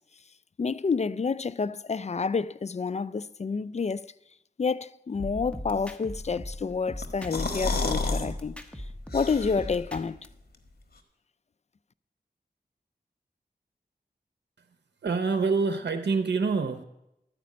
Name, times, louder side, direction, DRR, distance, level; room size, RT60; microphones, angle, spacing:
voice 1, 0.6-4.1 4.6-8.8 9.1-10.2, left 5 dB, 40° left, 0.4 m, -29 dB
sound 1, 5.2-7.6 7.9-10.3, equal, 5° left, 1.2 m, -39 dB
sound 2, 7.0-8.3 8.6-8.7 9.1-9.8, left 3 dB, 60° left, 1.4 m, -29 dB
voice 2, 15.0-16.8, right 4 dB, 85° right, 0.8 m, -26 dB
12.5 x 5.1 x 8.5 m
cardioid pair, 45°, 18 cm